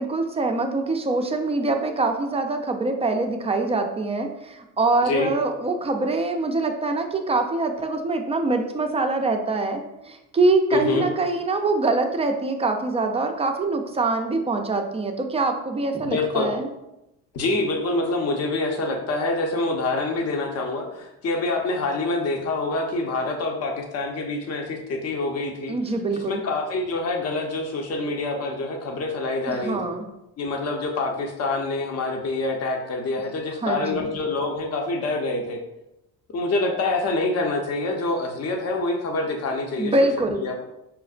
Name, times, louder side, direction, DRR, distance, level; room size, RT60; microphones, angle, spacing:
voice 1, 0.0-16.7 25.7-26.4 29.5-30.1 33.6-34.1 39.8-40.4, right 3 dB, 20° right, 4 dB, 0.3 m, -24 dB
voice 2, 10.7-11.1 16.0-16.5 17.3-25.7 26.1-29.9 30.4-35.6 36.3-40.6, left 2 dB, 40° left, 3 dB, 0.7 m, -26 dB
5.6 x 2.0 x 2.4 m, 0.90 s
supercardioid pair, 90°, 38 cm